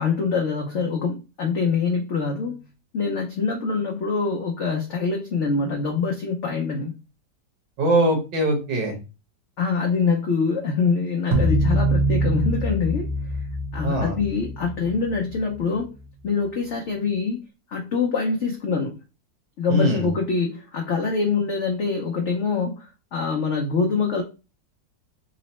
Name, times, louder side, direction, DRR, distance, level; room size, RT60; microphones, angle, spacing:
voice 1, 0.0-7.0 9.6-13.1 13.7-15.9 16.2-17.4 17.7-19.0 19.6-24.2, left 4 dB, 75° left, 0 dB, 0.6 m, -25 dB
voice 2, 7.8-9.0 13.8-14.2 19.7-20.1, right 1 dB, 70° right, 2 dB, 1.7 m, -22 dB
sound 1, 11.3-15.8, right 1 dB, 55° right, 1.2 m, -24 dB
3.9 x 2.0 x 4.1 m, 0.31 s
omnidirectional pair, 2.0 m